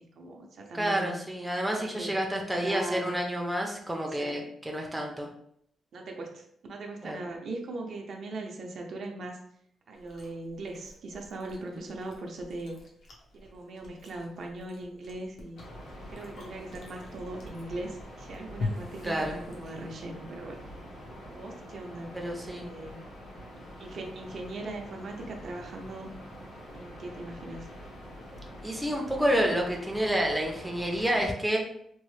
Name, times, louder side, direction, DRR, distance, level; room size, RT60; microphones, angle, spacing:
voice 1, 0.2-1.2 1.7-2.2 2.5-3.1 4.2-4.5 5.9-9.4 9.9-12.8 13.3-15.6 16.1-20.6 21.3-22.2 22.4-23.0 23.8-26.1 26.7-27.7, right 2 dB, 60° right, 1 dB, 0.6 m, -39 dB
voice 2, 0.7-5.3 7.0-7.2 11.7-11.8 19.0-19.4 22.1-22.6 28.6-31.6, equal, 5° right, 0 dB, 0.5 m, -29 dB
Chewing mastication, 9.9-20.1, left 3 dB, 60° left, 0.7 m, -44 dB
sound 1, 15.6-31.3, equal, 80° left, 1.2 m, -45 dB
3.0 x 2.0 x 3.1 m, 0.70 s
cardioid pair, 115°, 0 cm